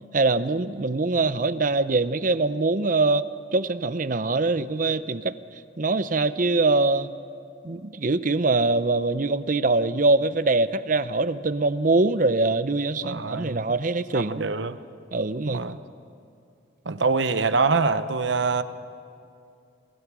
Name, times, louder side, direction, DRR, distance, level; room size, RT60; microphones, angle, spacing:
voice 1, 0.1-3.3 3.5-5.4 5.8-7.1 7.6-14.5 15.1-15.6, right 3 dB, 45° right, 13 dB, 0.7 m, -23 dB
voice 2, 13.0-13.7 14.1-14.8 15.4-15.8 16.9-18.6, right 4 dB, 70° right, 12 dB, 0.9 m, -24 dB
27.5 x 19.5 x 6.2 m, 2.5 s
head